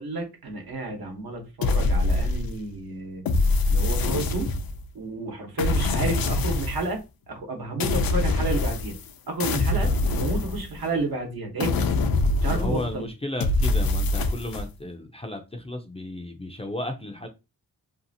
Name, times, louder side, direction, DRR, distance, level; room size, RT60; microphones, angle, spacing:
voice 1, 0.0-3.3 3.7-4.5 4.9-7.0 7.3-9.0 9.3-9.9 10.2-11.7 12.4-13.1, right 2 dB, 70° right, 1.0 m, -31 dB
sound 1, 1.6-2.7 3.2-4.9 5.6-6.9 7.8-9.1 9.4-11.0 11.6-13.0 13.4-14.7, left 2 dB, 70° left, 0.5 m, -24 dB
voice 2, 12.4-17.3, left 1 dB, 15° left, 0.4 m, -34 dB
2.7 x 2.4 x 2.6 m
cardioid pair, 85°, 38 cm